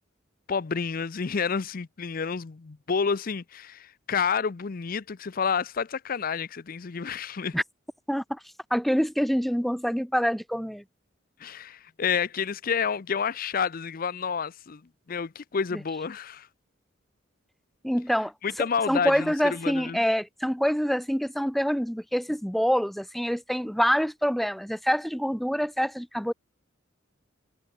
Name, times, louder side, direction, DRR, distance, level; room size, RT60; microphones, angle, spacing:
voice 1, 0.5-7.6 11.4-14.8 15.1-16.5 18.4-20.0, left 6 dB, 45° left, 0.5 m, -29 dB
voice 2, 8.1-8.4 8.7-10.8 17.8-18.3 18.9-26.3, equal, ahead, 0.5 m, -26 dB
head